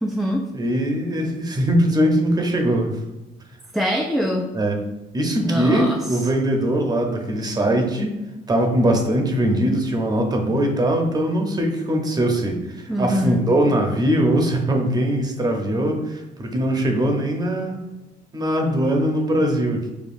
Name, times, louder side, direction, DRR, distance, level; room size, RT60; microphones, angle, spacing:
voice 1, 0.0-0.5 3.7-4.5 5.4-6.0 12.9-13.5, equal, ahead, 1 dB, 0.3 m, -23 dB
voice 2, 0.5-3.0 4.5-4.8 5.1-8.2 8.5-17.8 18.3-19.9, right 1 dB, 25° right, 2 dB, 0.8 m, -21 dB
6.9 x 2.3 x 2.5 m, 1.1 s
cardioid pair, 110°, 17 cm